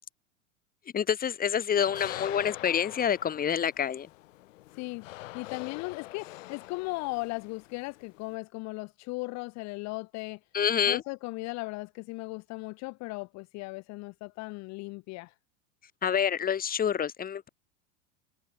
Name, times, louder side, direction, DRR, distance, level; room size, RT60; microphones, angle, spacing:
voice 1, 0.9-4.1 10.5-11.0 16.0-17.5, left 8 dB, 20° left, 1.2 m, -27 dB
sound 1, 1.8-8.3, left 17 dB, 75° left, 0.9 m, -45 dB
voice 2, 4.7-5.1 5.3-10.4 10.9-15.3, left 25 dB, 45° left, 0.7 m, -37 dB
hypercardioid pair, 95°, 39 cm